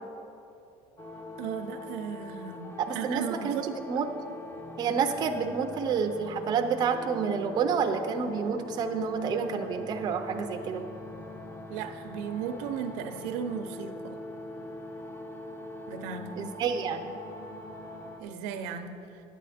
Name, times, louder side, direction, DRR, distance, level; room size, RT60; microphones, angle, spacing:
sound 1, 1.0-18.2, left 1 dB, 15° left, 0.7 m, -42 dB
voice 1, 1.4-3.7 11.7-14.2 15.9-16.4 18.2-19.2, right 7 dB, 85° right, 8 dB, 0.7 m, -36 dB
voice 2, 2.8-3.6 3.9-4.1 4.8-10.8 16.4-17.1, right 6 dB, 30° right, 5 dB, 0.5 m, -29 dB
10.0 x 8.3 x 4.2 m, 2.8 s
cardioid pair, 165°, 14 cm